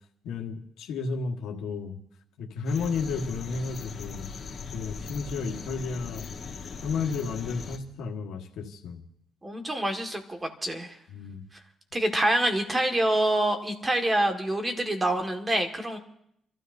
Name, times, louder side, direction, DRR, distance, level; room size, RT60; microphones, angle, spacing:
voice 1, 0.2-2.0 2.4-4.3 4.7-6.3 6.8-9.0 11.1-11.4, left 4 dB, 85° left, 2 dB, 1.5 m, -32 dB
sound 1, 2.6-7.8, left 5 dB, 45° left, 1.8 m, -39 dB
voice 2, 9.4-11.0 11.9-16.0, right 1 dB, 20° right, 5 dB, 1.8 m, -26 dB
28.0 x 13.0 x 2.7 m, 0.73 s
cardioid pair, 90°, 0 cm